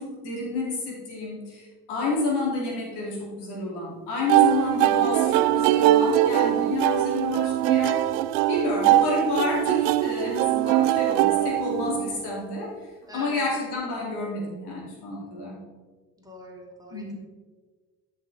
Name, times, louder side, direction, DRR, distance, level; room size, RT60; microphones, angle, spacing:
voice 1, 0.0-8.0 8.5-12.7 13.1-15.6 16.9-17.1, left 3 dB, 65° left, -3 dB, 3.1 m, -29 dB
voice 2, 4.3-4.8 13.0-13.4 16.2-17.1, left 1 dB, 10° right, -2 dB, 2.9 m, -43 dB
sound 1, 4.3-12.2, right 14 dB, 70° right, 0.6 m, -22 dB
12.5 x 6.7 x 3.5 m, 1.4 s
hypercardioid pair, 55°, 42 cm